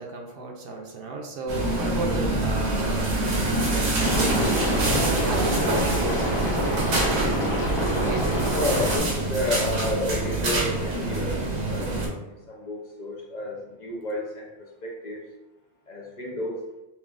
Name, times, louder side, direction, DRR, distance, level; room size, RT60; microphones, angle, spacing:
voice 1, 0.0-3.1 3.5-6.5 7.9-8.4, right 3 dB, 65° right, 1 dB, 0.8 m, -34 dB
sound 1, 1.5-12.1, right 2 dB, 90° right, 1.2 m, -25 dB
Liquid, 4.0-9.0, equal, 30° left, 1.4 m, -27 dB
voice 2, 8.3-11.4 11.7-14.5 14.8-15.2 15.9-16.6, left 1 dB, 50° left, -2 dB, 0.7 m, -31 dB
5.6 x 2.3 x 2.4 m, 0.99 s
omnidirectional pair, 1.1 m